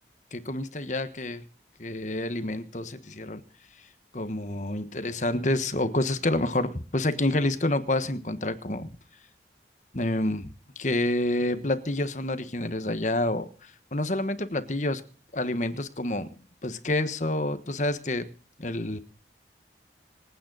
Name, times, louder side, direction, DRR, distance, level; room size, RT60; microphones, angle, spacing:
voice 1, 0.3-1.4 1.8-3.4 4.1-8.9 9.9-10.5 10.8-13.5 13.9-15.0 15.3-16.3 16.6-18.3 18.6-19.0, left 1 dB, 40° left, 11 dB, 1.3 m, -28 dB
25.5 x 9.2 x 4.0 m, 0.38 s
head